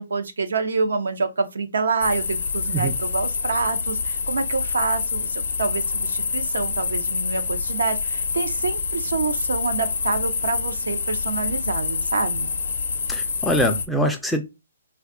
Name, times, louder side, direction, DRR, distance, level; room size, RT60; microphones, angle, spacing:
voice 1, 0.0-12.5, right 4 dB, 80° right, 0.5 m, -27 dB
sound 1, 2.0-13.9, left 5 dB, 75° left, 0.5 m, -26 dB
voice 2, 13.1-14.4, equal, ahead, 0.4 m, -23 dB
2.6 x 2.2 x 3.6 m
hypercardioid pair, 155°, 0 cm